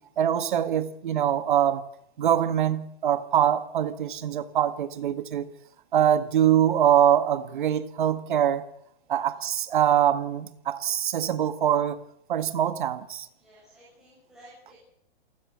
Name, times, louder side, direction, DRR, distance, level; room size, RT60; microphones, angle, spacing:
voice 1, 0.2-1.8 2.2-5.5 5.9-8.7 9.1-12.0 12.3-13.3, right 10 dB, 50° right, 1.8 m, -23 dB
voice 2, 9.1-9.5 13.4-14.8, equal, ahead, 7.3 m, -54 dB
28.0 x 14.0 x 8.0 m
hypercardioid pair, 180°, 31 cm